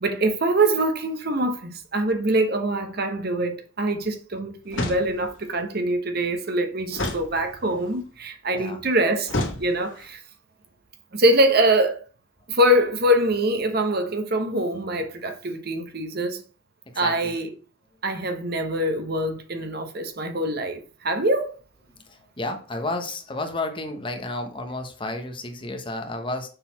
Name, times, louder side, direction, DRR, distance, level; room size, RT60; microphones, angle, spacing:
voice 1, 0.0-9.3 9.6-10.2 11.1-12.0 12.5-16.4 17.0-17.5 18.0-21.5, right 1 dB, 50° right, 1.0 m, -24 dB
sound 1, 4.7-5.5 6.9-7.9 9.3-10.1, left 2 dB, 70° left, 2.0 m, -30 dB
voice 2, 8.5-8.9 17.0-17.3 22.1-26.5, left 2 dB, 25° left, 1.1 m, -31 dB
6.7 x 4.1 x 5.6 m
head